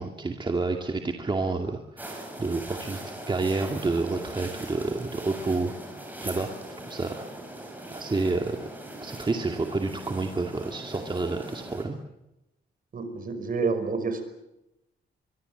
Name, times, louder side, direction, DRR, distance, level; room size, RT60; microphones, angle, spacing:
voice 1, 0.0-3.0 3.3-5.7 6.2-6.5 6.9-7.3 7.9-8.7 9.0-12.0, right 3 dB, 25° right, 3 dB, 2.3 m, -29 dB
sound 1, 2.0-11.8, right 1 dB, 10° right, 7.7 m, -41 dB
voice 2, 12.9-14.2, right 4 dB, 50° right, 9 dB, 5.6 m, -28 dB
24.5 x 24.0 x 8.1 m, 0.90 s
cardioid pair, 105°, 18 cm